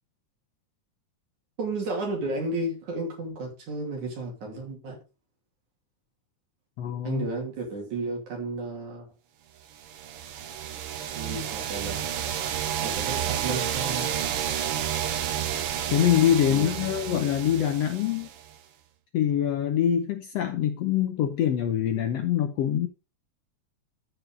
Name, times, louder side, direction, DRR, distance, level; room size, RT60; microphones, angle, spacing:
voice 1, 1.6-5.0 7.0-9.1 11.2-12.1 12.8-14.1 16.5-16.8, right 2 dB, 65° right, 4.1 m, -33 dB
voice 2, 6.8-7.3 15.9-18.3 19.1-22.9, left 10 dB, 75° left, 1.5 m, -24 dB
sound 1, 9.8-18.5, right 9 dB, 85° right, 1.2 m, -31 dB
13.5 x 4.9 x 3.8 m
omnidirectional pair, 3.7 m